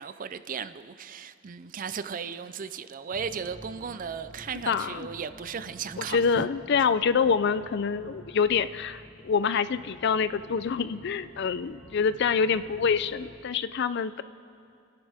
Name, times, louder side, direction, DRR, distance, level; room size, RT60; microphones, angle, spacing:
voice 1, 0.0-6.5, right 6 dB, 40° right, 0.4 m, -36 dB
sound 1, 3.1-13.3, equal, 15° left, 2.1 m, -50 dB
voice 2, 4.7-5.1 6.0-14.2, left 6 dB, 55° left, 0.4 m, -26 dB
29.0 x 10.5 x 3.5 m
head